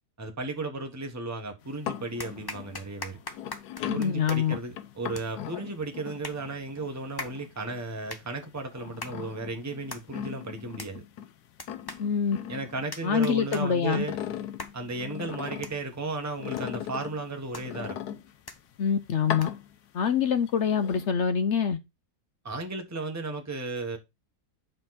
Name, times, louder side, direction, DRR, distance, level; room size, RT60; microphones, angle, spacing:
voice 1, 0.2-3.2 3.9-11.0 12.5-14.2 14.7-18.0 22.4-24.0, right 3 dB, 10° right, 1.0 m, -34 dB
sound 1, 1.1-1.7 2.2-19.8, left 2 dB, 25° left, 0.5 m, -45 dB
sound 2, 1.6-8.0 8.4-11.3 11.6-13.4 13.7-15.9 16.4-18.6 19.2-20.1 20.5-21.1, left 10 dB, 85° left, 1.2 m, -39 dB
voice 2, 3.9-4.6 12.0-12.4 13.0-14.0 18.8-19.5 19.9-21.8, left 7 dB, 60° left, 0.8 m, -25 dB
7.1 x 5.3 x 4.0 m
omnidirectional pair, 1.7 m